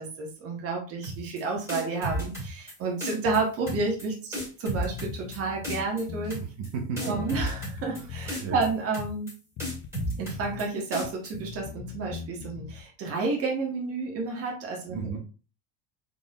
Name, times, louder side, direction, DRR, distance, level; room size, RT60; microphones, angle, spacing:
voice 1, 0.0-6.4 7.1-9.3 10.2-15.1, right 3 dB, 40° right, 0 dB, 1.3 m, -30 dB
sound 1, 1.0-1.4 1.7-2.7 3.0-3.4 3.7-4.0 4.3-5.4 5.6-6.0 6.3-6.7 7.0-8.0 8.3-8.7 8.9-9.3 9.6-10.6 10.9-11.3, equal, 5° right, 2.0 m, -33 dB
Bass guitar, 3.2-3.9 4.4-4.5 4.8-6.4 7.2-8.8 9.6-10.7 11.0-12.8, left 7 dB, 35° left, 0.4 m, -40 dB
voice 2, 6.2-7.2 7.9-8.1 8.3-8.6 14.9-15.2, right 5 dB, 85° right, 1 dB, 1.3 m, -34 dB
3.9 x 3.7 x 2.4 m, 0.35 s
cardioid pair, 135°, 36 cm